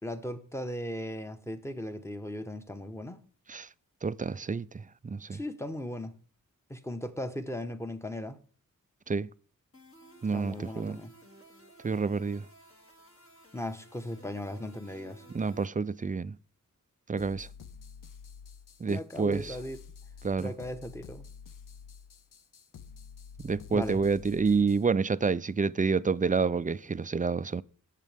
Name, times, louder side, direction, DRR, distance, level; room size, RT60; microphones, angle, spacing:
voice 1, 0.0-3.2 5.3-6.1 6.7-8.4 10.3-11.1 13.5-15.2 18.9-19.8 20.4-21.2 23.7-24.0, left 1 dB, 10° left, 1.2 m, -37 dB
voice 2, 4.0-5.4 9.1-9.3 10.2-11.0 11.8-12.5 15.3-16.4 17.1-17.5 18.8-19.6 20.2-20.5 23.4-27.6, right 4 dB, 25° right, 0.4 m, -28 dB
sound 1, 9.7-15.7, right 1 dB, 45° left, 2.6 m, -55 dB
sound 2, 17.2-24.9, left 6 dB, 80° left, 0.7 m, -49 dB
18.0 x 7.4 x 3.5 m
wide cardioid pair, 80°, 32 cm